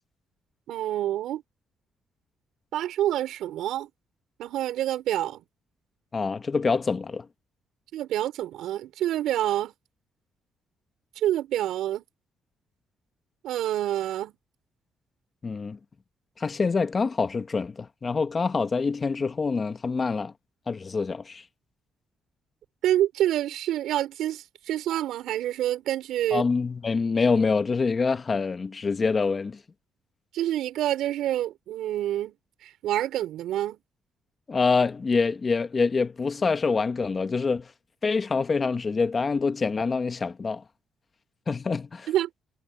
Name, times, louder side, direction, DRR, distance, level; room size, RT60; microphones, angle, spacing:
voice 1, 0.7-1.4 2.7-3.9 4.4-5.4 7.9-9.7 11.2-12.0 13.4-14.3 22.8-26.5 30.3-32.3 32.6-33.8 42.1-42.3, right 12 dB, 85° right, 4.9 m, -27 dB
voice 2, 6.1-7.2 15.4-15.8 16.4-20.3 20.7-21.4 26.3-29.6 34.5-37.7 38.0-40.6 41.5-42.1, left 4 dB, 35° left, 1.4 m, -25 dB
cardioid pair, 90°, 0 cm